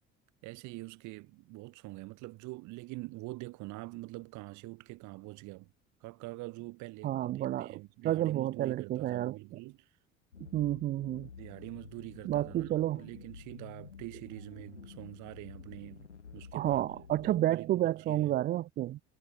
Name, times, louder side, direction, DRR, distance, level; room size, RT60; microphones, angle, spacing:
voice 1, 0.4-5.7 6.0-9.9 11.4-12.7 13.0-18.3, right 22 dB, 60° right, 5.9 m, -45 dB
voice 2, 7.0-9.4 10.5-11.3 12.3-13.0 16.5-19.0, right 14 dB, 30° right, 0.4 m, -30 dB
sound 1, 10.3-17.4, left 6 dB, 85° left, 1.6 m, -50 dB
figure-of-eight pair, 55°, 34 cm